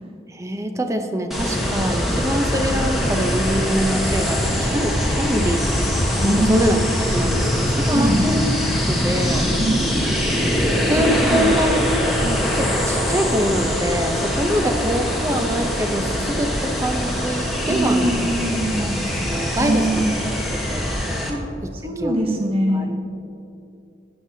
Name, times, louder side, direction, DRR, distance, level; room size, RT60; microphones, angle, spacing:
voice 1, 0.3-5.9 6.2-6.8 7.1-8.4 8.9-9.4 10.9-11.9 12.5-18.1 18.8-20.3 20.7-20.9 21.6-21.7 22.0-22.2 22.7-23.0, equal, 15° right, 6 dB, 0.6 m, -24 dB
sound 1, 1.3-21.3, equal, ahead, 1.2 m, -22 dB
voice 2, 6.2-6.8 7.8-8.2 9.6-9.8 10.9-11.5 12.2-12.4 17.7-19.0 19.6-20.1 21.3-21.4 21.7-22.9, right 1 dB, 30° right, 1 dB, 1.0 m, -23 dB
13.0 x 8.9 x 2.8 m, 2.7 s
head